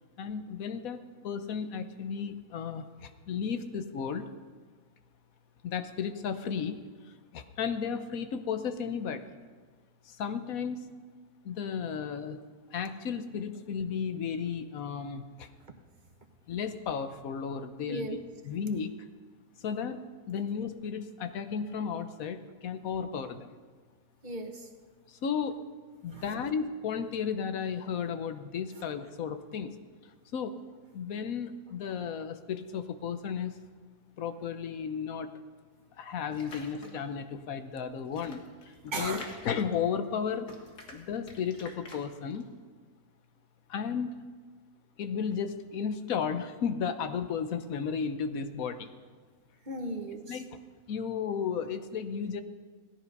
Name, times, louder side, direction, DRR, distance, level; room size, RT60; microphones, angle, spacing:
voice 1, 0.2-4.3 5.6-6.8 7.3-9.2 10.0-10.9 11.4-12.4 12.7-15.5 16.5-18.1 18.5-18.9 19.6-20.0 20.3-23.6 25.1-25.6 26.0-29.7 30.3-30.6 30.9-33.5 34.2-35.3 36.0-40.5 40.9-42.5 43.7-44.1 45.0-48.9 50.3-50.5 50.9-52.4, left 6 dB, 65° left, 9 dB, 1.3 m, -34 dB
voice 2, 17.9-18.2 24.2-24.7 26.1-26.4 38.9-39.3 49.6-50.4, right 1 dB, 30° right, 5 dB, 1.2 m, -36 dB
sound 1, 36.3-37.2 37.7-40.2 40.4-42.4, left 3 dB, 80° left, 2.2 m, -48 dB
17.0 x 10.5 x 5.3 m, 1.5 s
omnidirectional pair, 1.7 m